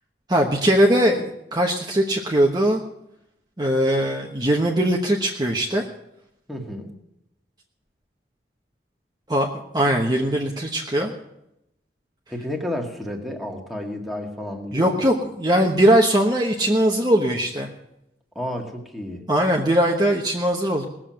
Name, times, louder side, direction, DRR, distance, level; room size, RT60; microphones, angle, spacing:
voice 1, 0.3-2.8 3.6-5.9 9.3-9.5 9.7-11.1 14.7-17.7 19.3-20.8, right 1 dB, 20° right, 0 dB, 1.1 m, -20 dB
voice 2, 6.5-6.9 12.3-15.1 18.4-19.2, left 1 dB, ahead, 0 dB, 2.0 m, -31 dB
19.5 x 7.5 x 7.6 m, 0.84 s
head